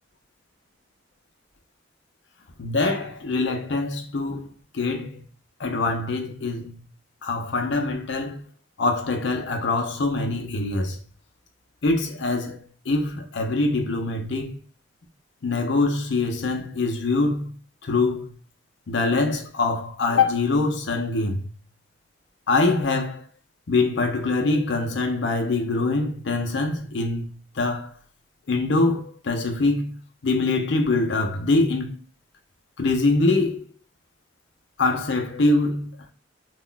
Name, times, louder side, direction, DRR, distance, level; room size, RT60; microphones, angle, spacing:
voice 1, 2.6-5.2 5.6-6.7 7.2-8.4 8.8-11.0 11.8-14.6 15.4-17.5 17.8-18.3 18.9-21.5 22.5-23.2 23.7-27.9 28.5-30.0 30.2-31.9 32.8-33.7 34.8-35.9, left 3 dB, 70° left, 0.6 m, -24 dB
2.4 x 2.2 x 3.7 m
head